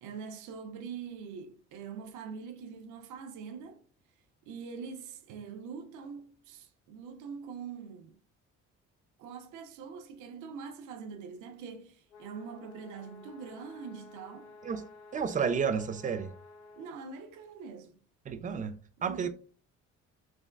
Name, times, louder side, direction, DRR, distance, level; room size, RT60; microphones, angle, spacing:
voice 1, 0.0-3.8 4.4-8.1 9.2-14.6 16.8-18.0 19.0-19.3, right 6 dB, 85° right, 0.5 m, -44 dB
sound 1, 12.1-16.9, left 3 dB, 80° left, 0.9 m, -53 dB
voice 2, 15.1-16.3 18.3-18.7 19.0-19.3, right 6 dB, 30° right, 0.3 m, -31 dB
3.4 x 2.2 x 2.2 m
cardioid pair, 95°, 29 cm